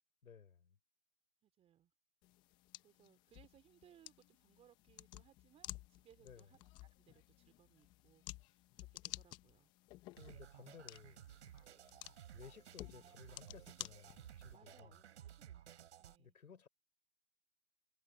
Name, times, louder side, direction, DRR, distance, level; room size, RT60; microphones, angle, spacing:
voice 1, 0.2-0.8 6.2-6.5 10.1-11.3 12.3-15.0 16.2-16.7, left 6 dB, 70° left, 4.3 m, -58 dB
voice 2, 1.4-1.9 2.8-9.7 11.6-11.9 14.5-15.6 16.0-16.4, right 10 dB, 15° right, 2.7 m, -68 dB
sound 1, 2.2-14.6, left 18 dB, 10° left, 0.7 m, -54 dB
sound 2, 10.2-16.2, right 10 dB, 50° right, 4.1 m, -57 dB
hypercardioid pair, 140°, 45 cm